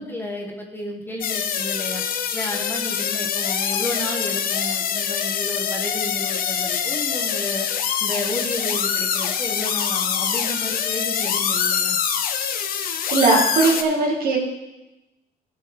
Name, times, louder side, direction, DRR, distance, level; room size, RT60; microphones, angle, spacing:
voice 1, 0.0-2.0 2.3-7.7 8.0-12.0, left 1 dB, 10° left, 0 dB, 1.5 m, -32 dB
sound 1, 1.2-13.8, left 8 dB, 60° left, 0.8 m, -24 dB
voice 2, 13.1-14.4, right 3 dB, 60° right, -1 dB, 2.3 m, -19 dB
15.0 x 5.6 x 3.7 m, 0.97 s
cardioid pair, 110°, 17 cm